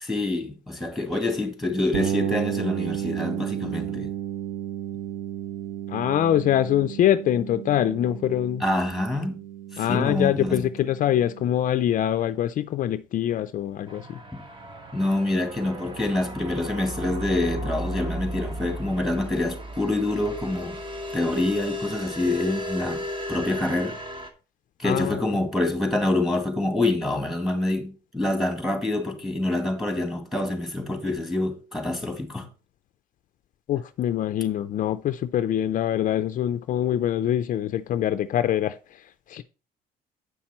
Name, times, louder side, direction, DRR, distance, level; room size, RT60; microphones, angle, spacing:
voice 1, 0.0-4.1 8.6-9.4 9.7-10.7 14.3-14.4 14.9-20.8 21.1-24.0 24.8-32.5, left 2 dB, ahead, 2.0 m, -26 dB
sound 1, 1.9-11.6, right 11 dB, 50° right, 1.0 m, -33 dB
voice 2, 5.9-8.6 9.8-14.2 24.8-25.2 33.7-39.4, left 11 dB, 50° left, 0.4 m, -24 dB
sound 2, 13.9-24.3, equal, 30° right, 1.4 m, -35 dB
8.2 x 5.8 x 4.2 m
cardioid pair, 110°, 17 cm